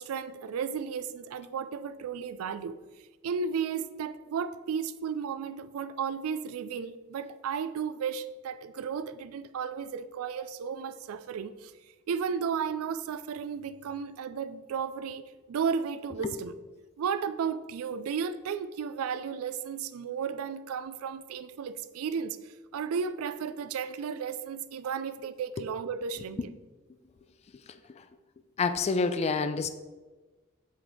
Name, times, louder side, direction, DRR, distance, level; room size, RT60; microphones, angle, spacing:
voice 1, 0.0-2.7 3.2-11.7 12.1-15.2 15.5-16.6 17.0-26.4, right 6 dB, 75° right, 0.4 m, -34 dB
voice 2, 28.6-29.7, left 4 dB, 30° left, 0.3 m, -27 dB
8.1 x 3.2 x 3.9 m
head